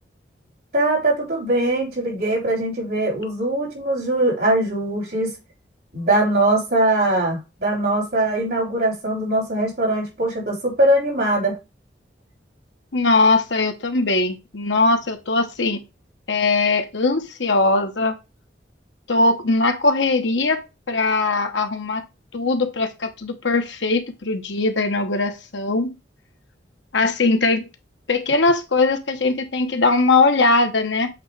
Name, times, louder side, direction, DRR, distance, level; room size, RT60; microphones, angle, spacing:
voice 1, 0.7-5.3 5.9-11.6, right 1 dB, 55° right, 3.6 m, -21 dB
voice 2, 12.9-15.8 16.3-18.2 19.1-22.0 22.3-25.9 26.9-27.7 28.1-31.1, left 3 dB, 80° left, 1.2 m, -20 dB
7.9 x 3.1 x 4.8 m
head